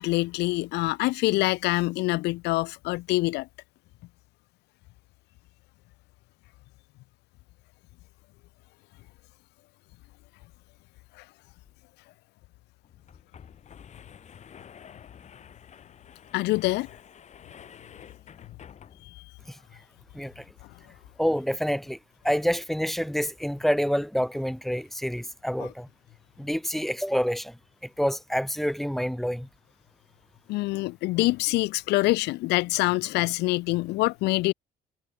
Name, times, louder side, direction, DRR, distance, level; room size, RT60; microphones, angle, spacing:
voice 1, 0.0-3.5 16.3-16.9 19.2-19.3 25.6-25.7 30.5-34.5, left 20 dB, 80° left, 0.5 m, -25 dB
sound 1, 11.6-11.7 12.0-12.1 12.8-19.3, left 8 dB, 45° left, 2.2 m, -50 dB
voice 2, 20.1-20.4 21.2-22.0 22.2-25.9 26.4-27.6 28.0-29.5, equal, ahead, 0.7 m, -27 dB
cardioid pair, 110°, 17 cm